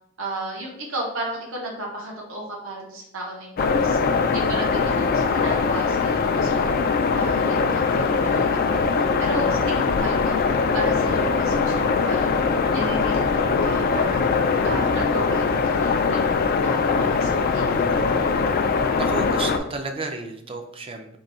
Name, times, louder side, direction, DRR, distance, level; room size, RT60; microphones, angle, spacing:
voice 1, 0.2-6.6 7.1-12.4 12.7-14.2 14.6-18.1, right 1 dB, 80° right, -2 dB, 0.9 m, -34 dB
sound 1, 3.6-19.6, left 5 dB, 45° left, 0.3 m, -21 dB
voice 2, 19.0-21.2, right 3 dB, 25° right, 5 dB, 0.4 m, -31 dB
3.7 x 2.2 x 4.1 m, 0.77 s
head